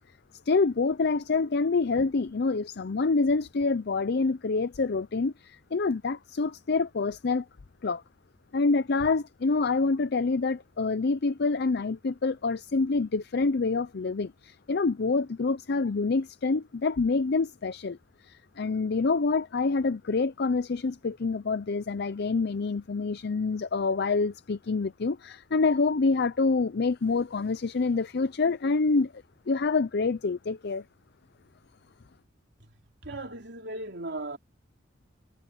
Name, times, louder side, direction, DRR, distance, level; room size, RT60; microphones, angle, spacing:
voice 1, 0.5-7.5 7.8-8.0 8.5-18.0 18.2-30.8, left 4 dB, 60° left, 0.6 m, -27 dB
voice 2, 33.0-34.4, right 2 dB, 65° right, 3.6 m, -37 dB
head